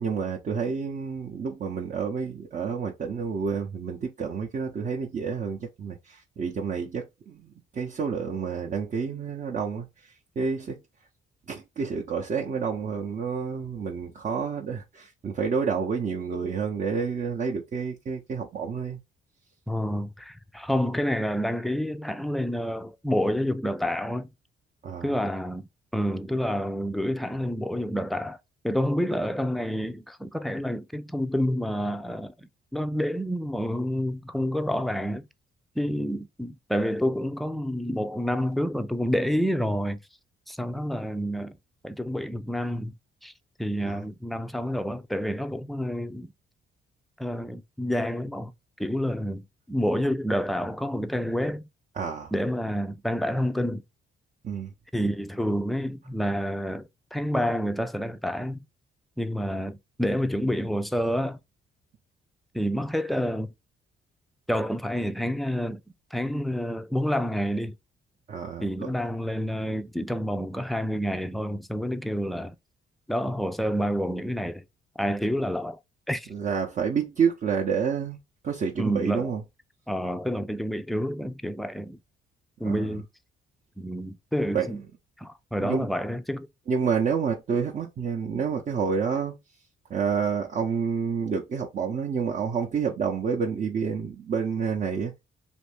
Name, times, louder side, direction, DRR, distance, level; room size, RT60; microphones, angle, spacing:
voice 1, 0.0-9.9 10.4-10.8 11.5-19.0 24.8-25.1 43.8-44.0 52.0-52.3 54.4-54.7 68.3-68.9 76.3-78.2 78.4-79.4 82.6-83.0 84.5-84.7 85.6-85.9 86.7-89.4 89.9-95.1, right 6 dB, 40° right, 0.6 m, -29 dB
voice 2, 19.7-24.3 25.0-28.4 28.6-35.3 35.8-40.0 40.5-41.6 41.8-42.9 43.2-43.3 43.6-46.3 47.2-48.5 48.8-51.7 52.3-53.8 54.9-58.7 59.2-61.4 62.5-63.5 64.5-65.8 66.1-67.7 68.6-72.6 73.1-74.6 75.0-75.8 76.1-76.3 78.8-79.3 79.9-82.0 82.6-83.1 83.8-84.8 85.2-86.5, equal, ahead, 0.3 m, -28 dB
2.6 x 2.6 x 3.3 m
cardioid pair, 90°, 20 cm